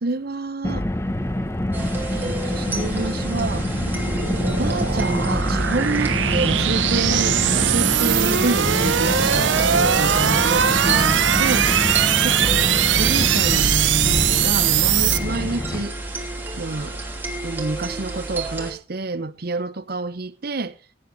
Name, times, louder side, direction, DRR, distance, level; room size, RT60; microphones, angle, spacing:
voice 1, 0.0-0.9 1.8-3.7 4.4-11.7 13.0-15.9 16.6-17.0 17.4-20.7, right 3 dB, 55° right, 0.9 m, -28 dB
Car, 0.6-15.8, left 1 dB, 15° left, 0.8 m, -26 dB
sound 1, 1.7-18.7, right 3 dB, 10° right, 3.0 m, -31 dB
sound 2, 1.9-15.2, right 9 dB, 90° right, 0.7 m, -21 dB
17.5 x 8.6 x 4.1 m
head